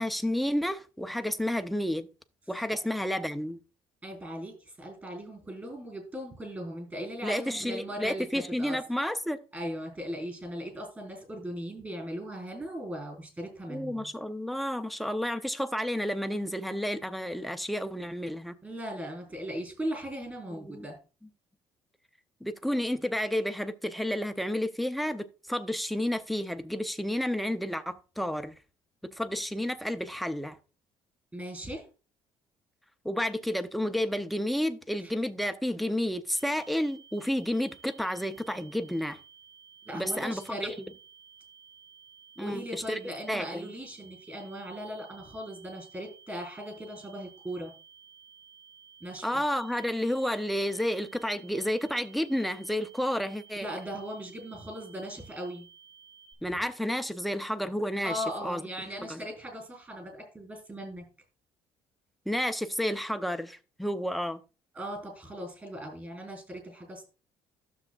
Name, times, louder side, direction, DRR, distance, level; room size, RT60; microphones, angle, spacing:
voice 1, 0.0-2.1 2.5-3.6 7.2-9.4 13.7-18.6 20.6-20.9 22.4-28.5 29.0-30.6 33.0-39.2 39.9-40.6 42.4-43.0 43.3-43.7 49.2-53.7 56.4-58.6 59.1-59.2 62.3-64.4, equal, ahead, 0.6 m, -31 dB
voice 2, 4.0-4.5 4.8-8.3 8.6-8.8 9.5-14.1 18.6-21.0 31.3-31.8 39.9-40.7 42.4-47.7 49.0-49.2 53.5-55.7 58.0-61.0 64.7-67.0, equal, 20° right, 4.2 m, -38 dB
sound 1, 36.3-56.3, right 7 dB, 85° right, 2.4 m, -55 dB
12.0 x 7.1 x 2.4 m
cardioid pair, 135°, 10 cm